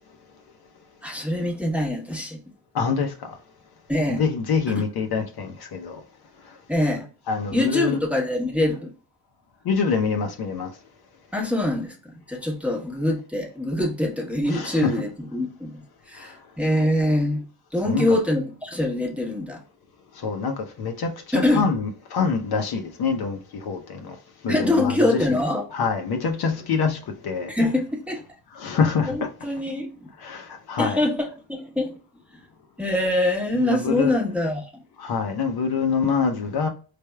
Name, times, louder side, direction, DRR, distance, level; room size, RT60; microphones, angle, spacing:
voice 1, 1.0-2.4 3.9-4.2 6.7-7.0 7.5-8.9 11.3-17.4 17.7-19.6 21.3-21.6 24.5-25.6 27.5-28.2 29.0-30.1 30.8-31.9 32.3-32.4 32.8-34.6, left 1 dB, 5° right, 1.0 m, -24 dB
voice 2, 2.7-3.4 4.1-6.0 7.3-8.0 9.6-10.7 14.5-15.0 16.2-16.4 17.8-18.2 20.2-24.2 24.4-25.3 25.7-27.5 28.5-29.2 30.2-31.0 33.5-34.1 35.0-36.7, left 5 dB, 50° left, 0.8 m, -25 dB
4.3 x 3.4 x 2.2 m
cardioid pair, 100°, 47 cm